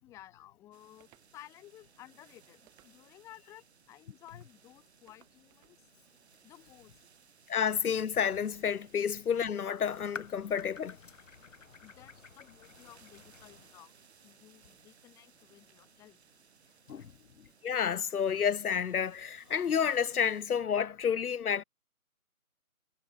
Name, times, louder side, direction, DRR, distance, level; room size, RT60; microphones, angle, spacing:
voice 1, 0.0-5.9 6.4-6.9 8.8-9.0 11.1-11.2 11.8-13.9 14.2-16.2 16.7-17.1, left 14 dB, 5° left, 1.9 m, -55 dB
sound 1, 0.7-20.6, right 6 dB, 45° right, 6.5 m, -63 dB
sound 2, 1.0-1.3 2.7-3.2 4.3-4.5 5.1-5.8, right 21 dB, 10° right, 1.9 m, -65 dB
voice 2, 7.5-11.0 16.9-17.1 17.6-21.6, left 7 dB, 80° left, 0.9 m, -30 dB
sound 3, 9.8-13.8, left 5 dB, 60° left, 5.6 m, -50 dB
hypercardioid pair, 165°, 43 cm